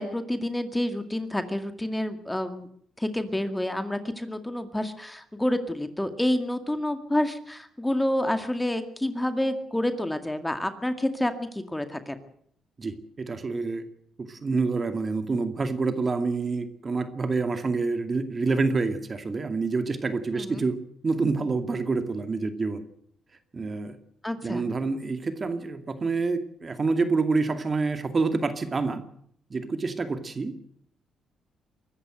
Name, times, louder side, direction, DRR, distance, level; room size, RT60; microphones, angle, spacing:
voice 1, 0.0-2.7 3.0-12.2 20.4-20.6 24.2-24.6, left 1 dB, 10° left, 8 dB, 2.1 m, -28 dB
voice 2, 12.8-13.8 14.2-20.8 21.0-22.8 23.5-24.0 24.4-29.0 29.5-30.6, right 4 dB, 35° right, 8 dB, 2.3 m, -27 dB
23.5 x 14.0 x 7.8 m, 0.66 s
cardioid pair, 90°, 0 cm